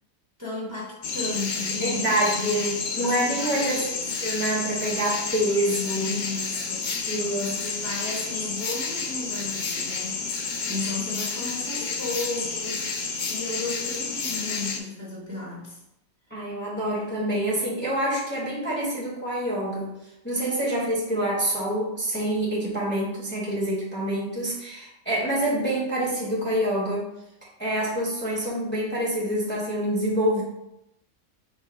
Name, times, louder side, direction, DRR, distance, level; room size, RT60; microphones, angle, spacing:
voice 1, 0.4-3.8 5.9-12.9 13.3-15.8, left 2 dB, 15° right, -6 dB, 1.0 m, -35 dB
sound 1, 1.0-14.8, left 4 dB, 80° left, 0.4 m, -30 dB
voice 2, 1.8-6.2 7.1-7.5 16.3-19.9 20.2-27.1 27.6-30.4, right 1 dB, 10° left, -6 dB, 1.1 m, -26 dB
4.5 x 2.2 x 4.5 m, 0.84 s
omnidirectional pair, 1.5 m